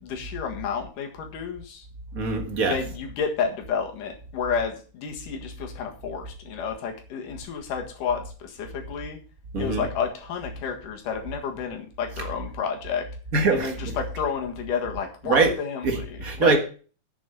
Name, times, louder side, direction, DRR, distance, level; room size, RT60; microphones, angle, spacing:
voice 1, 0.0-1.9 2.6-9.2 9.6-13.1 13.5-16.6, left 6 dB, 85° left, 3 dB, 3.3 m, -31 dB
voice 2, 2.1-2.8 9.5-9.8 13.3-13.7 15.2-15.5 15.8-16.6, right 4 dB, 40° right, 5 dB, 1.3 m, -22 dB
8.5 x 7.0 x 6.8 m, 0.39 s
omnidirectional pair, 3.6 m